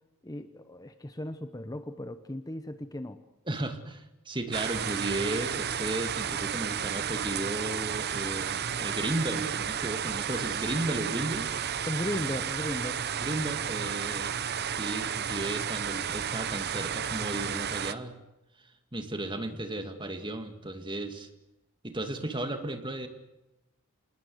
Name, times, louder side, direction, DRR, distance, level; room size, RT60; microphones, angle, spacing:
voice 1, 0.2-3.2 11.9-13.0, left 1 dB, 15° left, 10 dB, 0.9 m, -36 dB
voice 2, 3.5-11.5 13.2-14.3 14.6-18.1 18.9-21.3 21.8-23.1, right 1 dB, 20° right, 7 dB, 2.2 m, -34 dB
lmnln rain outside, 4.5-17.9, right 8 dB, 45° right, 0.8 m, -32 dB
27.0 x 20.0 x 8.0 m, 0.96 s
head